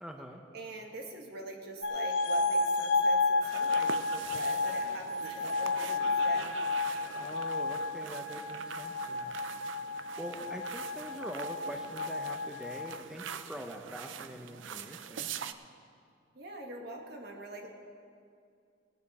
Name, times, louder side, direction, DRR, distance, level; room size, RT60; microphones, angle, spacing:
voice 1, 0.0-0.4 7.1-9.4 10.2-15.3, equal, 5° right, 3 dB, 0.6 m, -44 dB
voice 2, 0.5-6.6 10.3-10.5 16.3-17.7, right 2 dB, 55° right, 1 dB, 1.6 m, -44 dB
sound 1, 1.8-12.9, left 3 dB, 70° left, 0.8 m, -32 dB
sound 2, 3.4-15.5, right 7 dB, 85° right, 0.5 m, -44 dB
18.5 x 9.5 x 4.2 m, 2.3 s
head